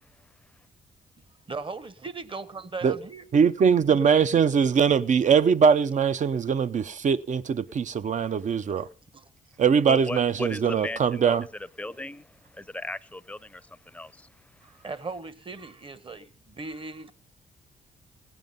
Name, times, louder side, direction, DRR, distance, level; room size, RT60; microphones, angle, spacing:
voice 1, 1.5-3.2 8.8-9.3 14.6-17.1, right 3 dB, 35° right, 1.1 m, -38 dB
voice 2, 3.3-8.9 9.6-11.5, right 6 dB, 50° right, 0.7 m, -22 dB
voice 3, 9.9-11.4 11.8-14.3, left 2 dB, 10° left, 0.6 m, -37 dB
17.0 x 9.2 x 5.4 m
cardioid pair, 65°, 16 cm